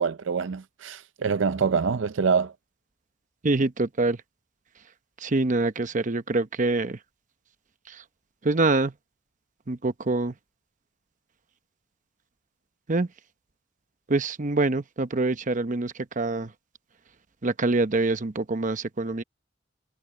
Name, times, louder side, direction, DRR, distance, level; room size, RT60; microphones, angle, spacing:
voice 1, 0.0-2.5, right 5 dB, 80° right, 0.5 m, -25 dB
voice 2, 3.4-4.2 5.2-7.0 7.9-8.0 8.4-8.9 9.7-10.3 12.9-13.1 14.1-16.5 17.4-19.2, right 2 dB, 40° right, 0.9 m, -25 dB
head